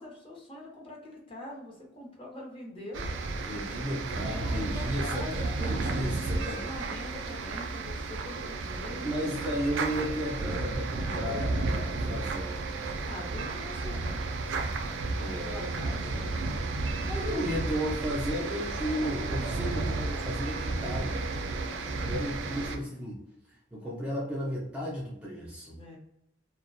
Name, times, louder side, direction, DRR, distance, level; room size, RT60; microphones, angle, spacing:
voice 1, 0.0-3.1 4.3-9.2 11.0-12.4 13.0-14.2 15.4-16.2 19.0-19.2 21.7-23.0 25.7-26.0, left 1 dB, 30° left, -3 dB, 0.7 m, -44 dB
sound 1, 2.9-22.8, right 3 dB, 80° right, 0.4 m, -32 dB
voice 2, 3.4-6.6 9.0-12.7 15.2-16.7 17.0-21.3 21.6-23.2 23.7-25.8, equal, 5° right, -5 dB, 0.4 m, -34 dB
2.2 x 2.1 x 2.6 m, 0.81 s
head